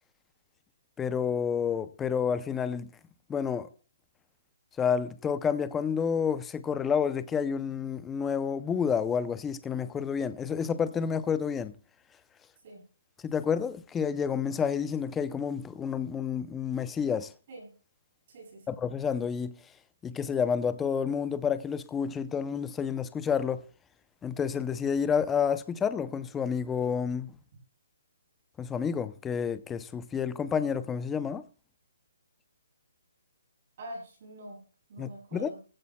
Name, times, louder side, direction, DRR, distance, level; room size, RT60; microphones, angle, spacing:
voice 1, 1.0-2.9 3.3-3.7 4.8-11.8 13.2-17.3 18.7-19.5 20.0-23.6 24.2-27.3 28.6-31.4 35.0-35.5, left 7 dB, 5° left, 0.5 m, -29 dB
voice 2, 18.3-18.6 33.8-34.6 34.9-35.6, right 1 dB, 35° right, 7.8 m, -44 dB
19.5 x 15.5 x 2.2 m
hypercardioid pair, 175°, 0 cm